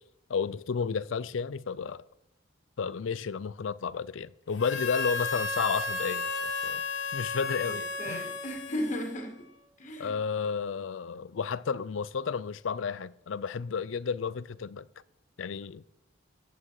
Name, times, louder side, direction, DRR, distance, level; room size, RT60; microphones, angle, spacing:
voice 1, 0.3-2.0 2.8-6.8 7.1-8.3 10.0-14.9 15.4-15.8, left 6 dB, 85° left, 0.5 m, -32 dB
Harmonica, 4.6-9.4, left 4 dB, 65° left, 1.4 m, -33 dB
voice 2, 7.7-9.5 9.8-10.1, equal, 40° left, 2.0 m, -36 dB
14.5 x 8.9 x 4.8 m
head